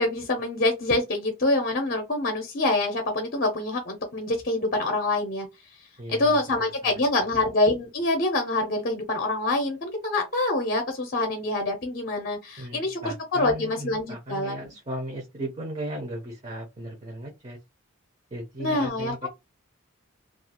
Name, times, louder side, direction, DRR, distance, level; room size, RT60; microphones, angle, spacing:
voice 1, 0.0-5.5 6.1-14.7 18.6-19.3, left 2 dB, 45° left, 0.5 m, -26 dB
voice 2, 6.0-7.3 12.6-17.6 18.3-19.3, right 1 dB, 30° right, 0.5 m, -37 dB
2.4 x 2.3 x 2.8 m
head